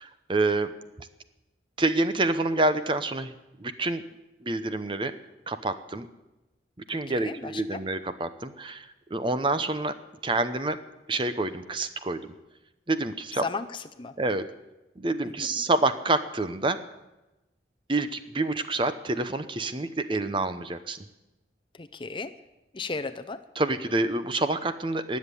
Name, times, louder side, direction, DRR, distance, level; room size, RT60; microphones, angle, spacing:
voice 1, 0.3-0.7 1.0-1.1 1.8-3.3 3.6-4.0 4.4-5.1 5.5-6.1 6.9-10.0 10.2-10.8 11.1-12.2 12.9-13.4 14.2-14.5 15.0-16.8 17.9-21.0 23.6-25.2, right 2 dB, 30° right, 11 dB, 0.7 m, -27 dB
voice 2, 6.9-7.8 13.4-14.2 15.2-15.6 21.7-22.3 22.7-23.4, left 4 dB, 25° left, 9 dB, 0.6 m, -36 dB
18.5 x 7.4 x 9.9 m, 1.0 s
head